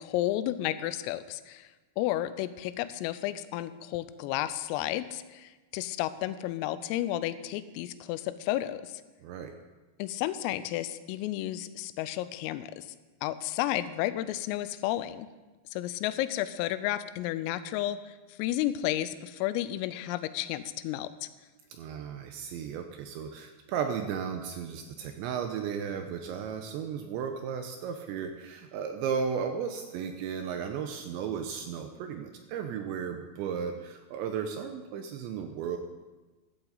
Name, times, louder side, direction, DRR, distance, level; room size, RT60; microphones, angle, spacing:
voice 1, 0.0-1.7 2.0-9.0 10.0-15.3 15.7-21.3, left 14 dB, 90° left, 14 dB, 3.3 m, -32 dB
voice 2, 9.2-9.5 21.7-35.8, right 7 dB, 80° right, 6 dB, 2.7 m, -35 dB
14.5 x 13.5 x 4.0 m, 1.2 s
omnidirectional pair, 5.8 m